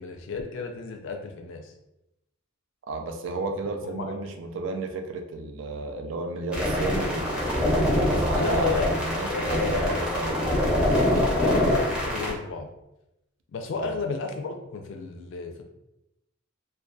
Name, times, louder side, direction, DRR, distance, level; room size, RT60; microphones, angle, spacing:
voice 1, 0.0-1.7 3.8-4.3 8.3-8.9 9.3-10.0 11.3-12.7 13.5-15.6, left 4 dB, 65° left, 4 dB, 0.4 m, -32 dB
voice 2, 2.9-7.4 7.7-10.6 13.8-13.9, right 3 dB, 70° right, 4 dB, 0.4 m, -33 dB
sound 1, 6.5-12.3, left 1 dB, 5° right, 0.5 m, -24 dB
2.5 x 2.2 x 2.2 m, 0.89 s
head